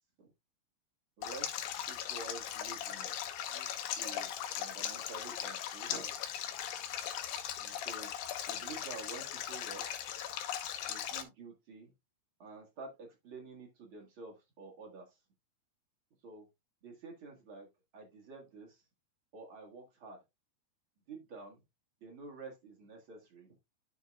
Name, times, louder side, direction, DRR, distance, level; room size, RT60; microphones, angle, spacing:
Stream, 1.2-11.2, left 10 dB, 75° left, 2.4 m, -39 dB
voice 1, 1.2-6.2 7.6-8.1 8.5-9.9 10.8-11.9 12.4-15.1 16.2-16.5 16.8-17.7 17.9-18.8 19.3-20.2 21.1-21.6 22.0-23.6, right 4 dB, 50° right, 1 dB, 1.7 m, -49 dB
13.0 x 4.6 x 2.3 m, 0.22 s
omnidirectional pair, 4.5 m